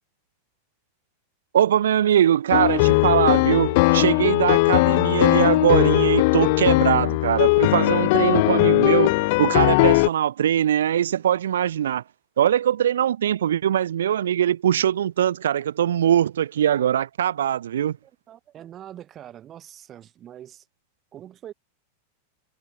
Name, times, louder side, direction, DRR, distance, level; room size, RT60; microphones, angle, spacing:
voice 1, 1.5-12.0 12.4-18.0, right 10 dB, 65° right, 0.7 m, -21 dB
sound 1, 2.5-10.1, left 25 dB, 50° left, 0.5 m, -19 dB
voice 2, 18.0-20.7 21.1-21.5, right 11 dB, 30° right, 6.1 m, -43 dB
figure-of-eight pair, 90°, 0 cm